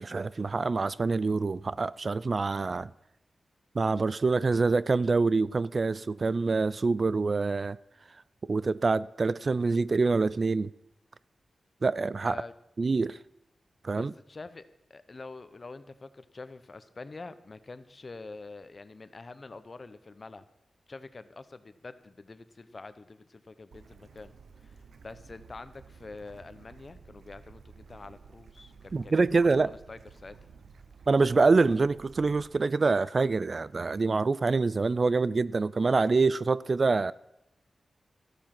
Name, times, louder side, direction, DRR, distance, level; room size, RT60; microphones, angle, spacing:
voice 1, 0.0-2.9 3.7-7.8 8.4-10.7 11.8-12.4 12.8-13.2 13.8-14.1 28.9-29.7 31.1-37.1, right 4 dB, 50° right, 0.3 m, -26 dB
voice 2, 13.9-20.4 20.9-24.3 24.6-24.8 25.0-30.4, left 3 dB, 45° left, 0.8 m, -46 dB
Bird / Stream, 23.7-32.6, right 5 dB, 80° right, 0.9 m, -53 dB
13.0 x 8.8 x 6.0 m
cardioid pair, 60°, 0 cm